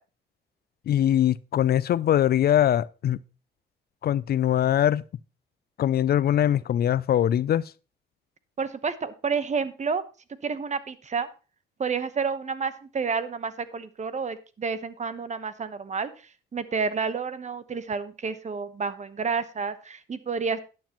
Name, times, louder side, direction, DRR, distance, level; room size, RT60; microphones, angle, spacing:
voice 1, 0.9-3.2 4.0-5.0 5.8-7.7, left 11 dB, 50° left, 0.4 m, -22 dB
voice 2, 8.6-10.0 10.4-11.3 11.8-20.6, right 5 dB, 35° right, 1.1 m, -30 dB
11.5 x 9.4 x 3.0 m
cardioid pair, 90°, 20 cm